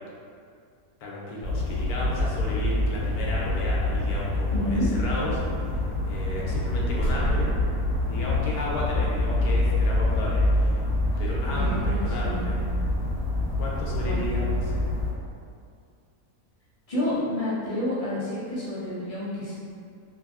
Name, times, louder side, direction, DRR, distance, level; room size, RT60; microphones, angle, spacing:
voice 1, 1.0-5.4 6.0-7.5 8.1-10.7 11.2-12.6 13.6-14.9, left 1 dB, 80° left, -5 dB, 1.1 m, -33 dB
sound 1, 1.4-15.1, left 1 dB, 80° right, 1.8 m, -26 dB
voice 2, 4.5-4.9 11.5-12.5 14.0-14.2 16.9-19.5, left 1 dB, 40° left, -11 dB, 0.5 m, -29 dB
3.4 x 2.1 x 2.3 m, 2.3 s
omnidirectional pair, 1.6 m